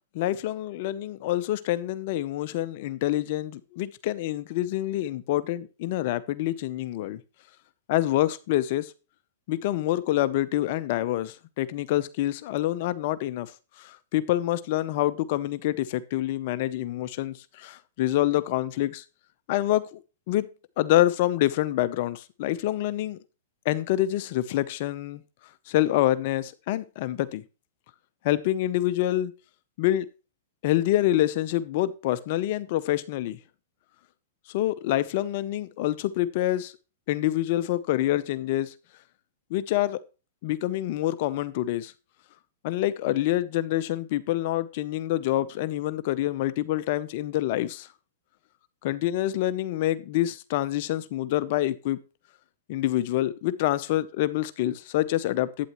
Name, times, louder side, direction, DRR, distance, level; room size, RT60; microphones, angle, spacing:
voice 1, 0.1-7.2 7.9-8.9 9.5-13.5 13.8-19.0 19.5-20.0 20.3-20.5 20.8-23.2 23.6-25.2 25.7-27.4 28.2-29.3 29.8-30.1 30.6-33.4 34.5-36.7 37.1-38.7 39.5-40.0 40.4-41.9 42.6-47.9 48.8-52.0 52.7-55.7, left 14 dB, 55° left, 0.7 m, -26 dB
11.5 x 9.1 x 3.0 m
hypercardioid pair, 125°, 0 cm